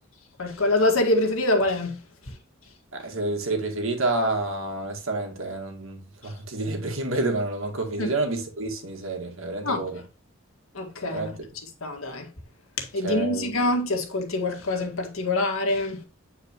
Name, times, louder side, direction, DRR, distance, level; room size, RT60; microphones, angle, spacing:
voice 1, 0.4-2.0 2.3-2.4 6.2-6.3 8.0-8.1 9.6-9.8 10.7-11.4 11.8-12.3 12.8-16.0, left 2 dB, 85° left, 2.0 m, -25 dB
voice 2, 2.9-10.0 11.1-11.3 13.0-13.5, right 2 dB, 75° right, 2.0 m, -29 dB
8.9 x 4.8 x 3.0 m
head